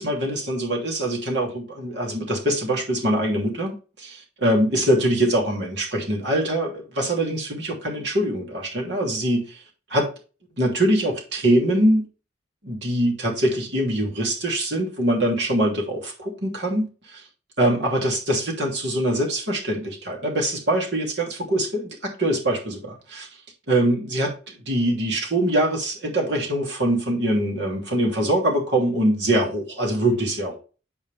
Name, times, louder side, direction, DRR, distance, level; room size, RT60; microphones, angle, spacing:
voice 1, 0.0-9.6 9.9-10.1 10.6-12.1 12.6-17.2 17.6-23.3 23.7-24.3 24.7-30.6, right 1 dB, 65° right, 2.8 m, -23 dB
8.0 x 5.5 x 3.5 m
head